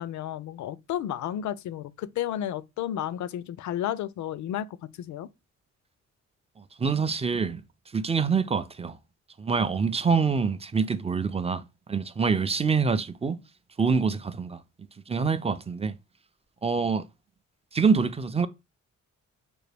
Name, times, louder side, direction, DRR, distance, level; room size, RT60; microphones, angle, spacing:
voice 1, 0.0-5.3, left 11 dB, 65° left, 0.4 m, -32 dB
voice 2, 6.8-7.6 7.9-9.0 9.4-13.4 13.8-14.6 15.1-16.0 16.6-17.1 17.7-18.5, right 5 dB, 20° right, 0.4 m, -25 dB
6.0 x 2.2 x 3.3 m
cardioid pair, 75°, 31 cm